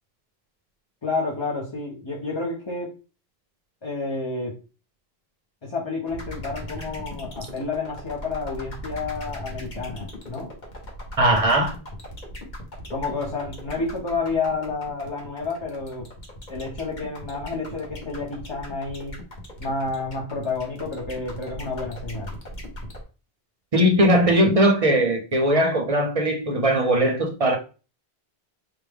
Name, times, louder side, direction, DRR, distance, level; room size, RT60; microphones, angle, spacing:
voice 1, 1.0-3.0 3.8-4.5 5.6-10.5 12.9-16.1 16.5-19.2 19.6-22.3, left 3 dB, 30° left, 0.7 m, -30 dB
sound 1, 6.1-23.0, left 1 dB, 50° left, 1.1 m, -38 dB
voice 2, 11.2-11.7 23.7-27.6, right 1 dB, 40° right, 0.6 m, -19 dB
4.8 x 2.2 x 3.4 m
omnidirectional pair, 1.0 m